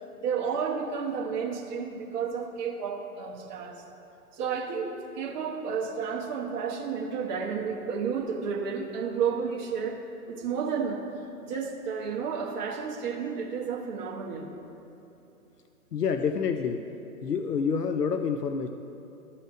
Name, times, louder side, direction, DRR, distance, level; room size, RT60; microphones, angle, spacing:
voice 1, 0.2-3.8 4.3-10.0 10.3-11.0 11.5-14.5, right 6 dB, 30° right, -1 dB, 1.2 m, -31 dB
voice 2, 15.9-16.9 17.2-18.7, left 6 dB, 85° left, 7 dB, 0.7 m, -27 dB
13.0 x 5.7 x 6.1 m, 3.0 s
figure-of-eight pair, 130°, 46 cm